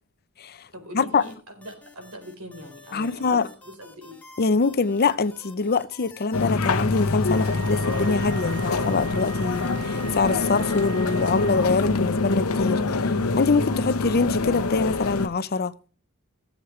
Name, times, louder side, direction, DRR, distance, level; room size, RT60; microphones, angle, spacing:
voice 1, 0.7-4.2, left 1 dB, 80° right, 4.1 m, -42 dB
sound 1, 1.2-10.9, left 3 dB, 5° left, 2.1 m, -50 dB
voice 2, 2.9-3.5 4.4-15.9, left 4 dB, 45° left, 0.6 m, -24 dB
sound 2, 6.3-15.3, left 3 dB, 75° left, 0.9 m, -25 dB
Wind instrument woodwind instrument, 7.2-11.9, right 5 dB, 50° right, 4.2 m, -41 dB
17.0 x 7.4 x 3.2 m
head